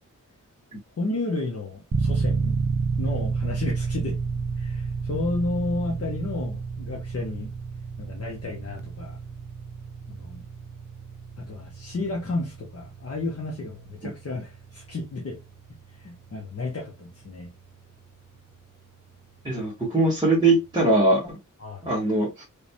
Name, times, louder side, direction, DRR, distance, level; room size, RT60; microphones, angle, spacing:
voice 1, 1.0-2.6 3.0-4.2 4.6-7.5 8.0-9.2 10.1-10.4 11.4-15.4 16.0-17.5 21.6-21.9, left 2 dB, 50° left, 1.0 m, -32 dB
sound 1, 1.9-18.7, right 4 dB, 30° right, 0.4 m, -31 dB
voice 2, 19.4-21.3 21.8-22.4, right 2 dB, 15° right, 1.4 m, -21 dB
3.2 x 3.2 x 2.8 m
wide cardioid pair, 140°, 32 cm